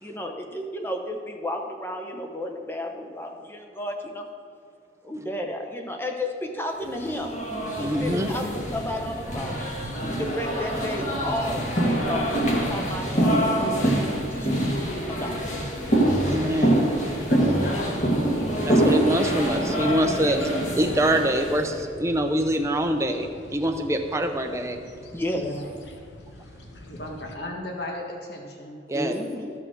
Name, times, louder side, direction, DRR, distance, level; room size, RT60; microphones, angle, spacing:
voice 1, 0.0-4.3 5.0-7.3 7.8-9.6 10.0-13.4 13.8-14.0 14.3-14.7 15.1-15.5 18.6-19.2 20.2-20.4 25.1-25.6 28.9-29.5, left 1 dB, 15° left, 3 dB, 0.9 m, -33 dB
sound 1, 6.9-21.7, right 1 dB, 40° left, 1.9 m, -25 dB
sound 2, 7.7-27.4, left 1 dB, 80° left, 1.1 m, -42 dB
voice 2, 7.8-8.3 16.2-16.8 18.6-20.4 20.8-24.8 28.9-29.1, right 1 dB, 15° right, 5 dB, 0.7 m, -24 dB
voice 3, 17.3-18.0 25.3-25.7 26.9-28.8, left 1 dB, 60° left, 0 dB, 1.6 m, -35 dB
14.0 x 5.7 x 6.2 m, 2.6 s
head